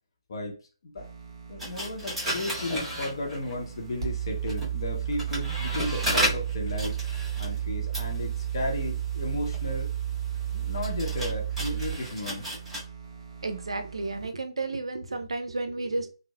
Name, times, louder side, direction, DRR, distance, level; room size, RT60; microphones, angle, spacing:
sound 1, 0.9-14.3, right 10 dB, 45° right, 1.4 m, -33 dB
voice 1, 1.5-9.9 10.5-12.5, left 2 dB, 55° left, 0.8 m, -34 dB
sound 2, 1.6-3.7 4.3-12.8, equal, 5° right, 0.9 m, -34 dB
voice 2, 13.4-16.1, right 3 dB, 80° right, 0.4 m, -32 dB
3.0 x 2.0 x 2.2 m
figure-of-eight pair, 140°, 3 cm